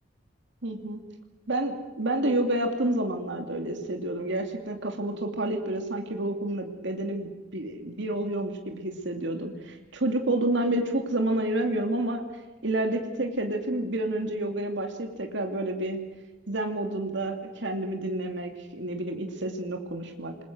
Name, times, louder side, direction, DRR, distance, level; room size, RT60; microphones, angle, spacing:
voice 1, 0.6-1.0 1.5-12.2 12.6-16.0 16.5-20.4, right 1 dB, 65° right, 4 dB, 2.7 m, -29 dB
28.0 x 21.5 x 6.3 m, 1.1 s
head